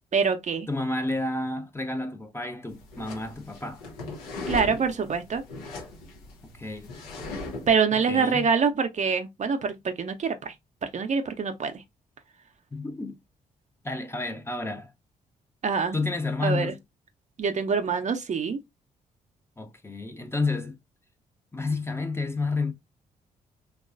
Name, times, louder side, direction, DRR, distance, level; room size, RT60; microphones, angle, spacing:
voice 1, 0.1-0.7 4.5-5.4 7.7-10.5 10.9-11.8 15.6-16.0 16.4-16.7 17.4-18.6, right 5 dB, 40° right, 0.5 m, -25 dB
voice 2, 0.7-3.8 6.6-6.9 7.9-8.5 12.7-13.2 13.8-14.9 15.9-16.8 19.6-20.8 21.5-22.7, left 3 dB, 15° left, 0.6 m, -30 dB
sound 1, 2.7-7.8, left 2 dB, 85° left, 0.6 m, -38 dB
2.9 x 2.3 x 2.4 m
hypercardioid pair, 40°, 18 cm